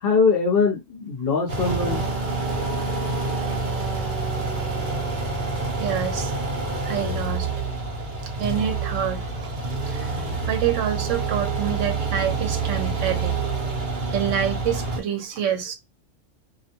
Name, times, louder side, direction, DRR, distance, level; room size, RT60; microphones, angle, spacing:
voice 1, 0.0-2.0, left 4 dB, 55° left, 0.8 m, -22 dB
sound 1, 1.5-15.0, right 3 dB, 50° right, 0.7 m, -27 dB
voice 2, 5.8-6.4 6.9-7.5 8.4-9.5 9.9-10.1 10.5-13.4 14.1-15.7, right 9 dB, 75° right, 0.9 m, -27 dB
2.4 x 2.2 x 2.8 m
omnidirectional pair, 1.3 m